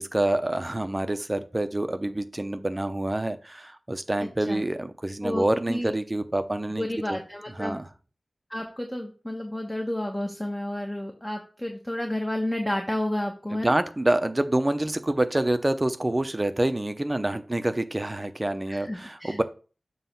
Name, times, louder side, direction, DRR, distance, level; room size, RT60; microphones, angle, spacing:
voice 1, 0.0-7.2 7.6-7.9 13.5-19.4, right 1 dB, 25° right, 9 dB, 0.7 m, -27 dB
voice 2, 4.2-4.7 5.2-5.9 6.8-7.8 8.5-13.7 18.7-19.4, left 1 dB, 15° left, 2 dB, 1.2 m, -31 dB
7.4 x 3.1 x 5.8 m, 0.36 s
wide cardioid pair, 70°, 0 cm